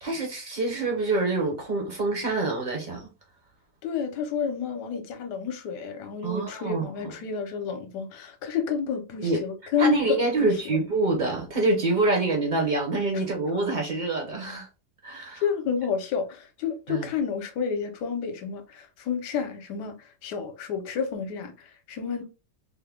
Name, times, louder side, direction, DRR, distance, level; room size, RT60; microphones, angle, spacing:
voice 1, 0.0-3.1 6.2-6.9 9.2-9.4 9.8-14.7 15.0-15.4 16.9-17.1, right 2 dB, 40° right, 0.7 m, -26 dB
voice 2, 3.8-10.8 15.4-22.2, left 6 dB, 70° left, 1.2 m, -30 dB
3.6 x 2.1 x 3.4 m
omnidirectional pair, 2.0 m